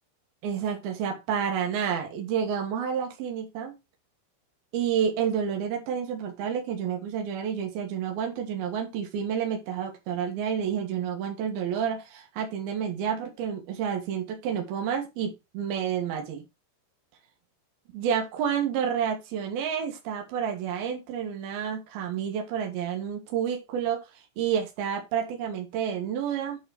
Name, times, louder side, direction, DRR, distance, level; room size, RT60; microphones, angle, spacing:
voice 1, 0.4-3.7 4.7-16.4 17.9-24.0 24.4-26.6, right 8 dB, 70° right, 2 dB, 3.5 m, -29 dB
8.9 x 4.2 x 5.2 m, 0.25 s
omnidirectional pair, 4.7 m